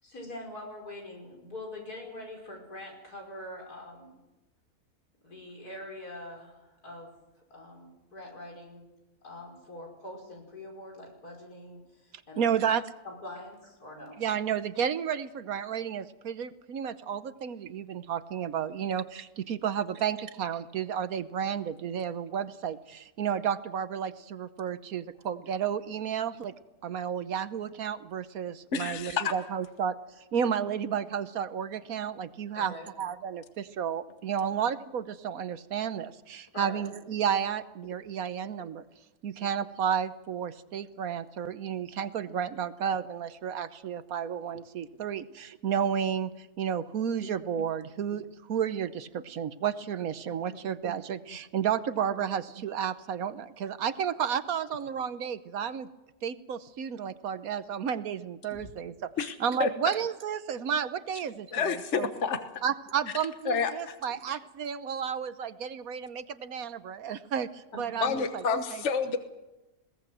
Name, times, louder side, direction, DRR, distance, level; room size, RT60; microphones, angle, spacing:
voice 1, 0.0-4.2 5.2-7.1 7.5-8.9 9.2-12.5 13.0-14.2 32.5-32.9 36.5-36.8 67.7-67.8, left 1 dB, 85° left, 1 dB, 5.9 m, -44 dB
voice 2, 12.4-12.8 14.2-26.5 26.8-29.9 30.3-38.8 39.2-55.9 56.2-62.1 62.6-68.8, right 8 dB, 70° right, 13 dB, 1.3 m, -32 dB
voice 3, 28.7-29.3 50.2-50.3 58.5-58.6 59.2-59.3 59.6-59.7 61.5-62.4 63.5-63.9 68.0-69.2, left 5 dB, 50° left, 8 dB, 1.5 m, -29 dB
21.0 x 17.5 x 7.8 m, 1.0 s
omnidirectional pair, 1.6 m